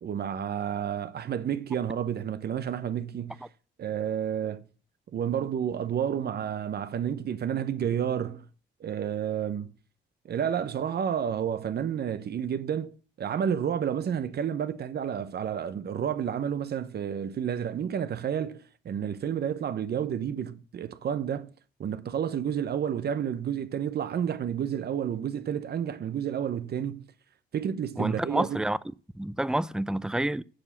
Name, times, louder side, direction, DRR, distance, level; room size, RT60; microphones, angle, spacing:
voice 1, 0.0-3.5 3.8-4.6 5.1-8.4 8.8-9.7 10.2-21.5 21.8-27.1 27.5-28.6, right 8 dB, 55° right, 0.9 m, -30 dB
voice 2, 28.0-28.8 29.2-30.4, right 1 dB, 5° right, 0.4 m, -28 dB
11.5 x 4.8 x 8.4 m
cardioid pair, 90°, 20 cm